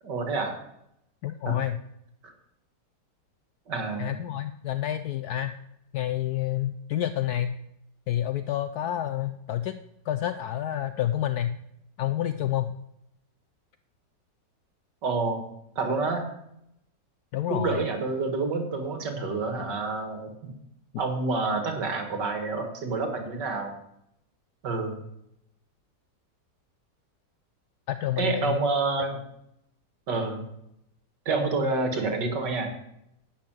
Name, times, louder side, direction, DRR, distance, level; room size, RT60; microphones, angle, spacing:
voice 1, 0.0-0.5 1.5-1.6 3.7-4.1 15.0-15.4 15.8-16.3 17.5-20.5 21.0-23.7 24.6-25.0 28.2-29.2 30.1-30.4 31.3-32.7, right 3 dB, 70° right, 5 dB, 2.5 m, -28 dB
voice 2, 1.2-1.8 4.0-5.5 5.9-7.6 8.1-9.8 10.1-11.6 12.0-12.7 17.3-17.8 27.9-28.6, left 12 dB, 70° left, 11 dB, 1.0 m, -29 dB
11.5 x 5.8 x 9.0 m, 0.79 s
omnidirectional pair, 1.9 m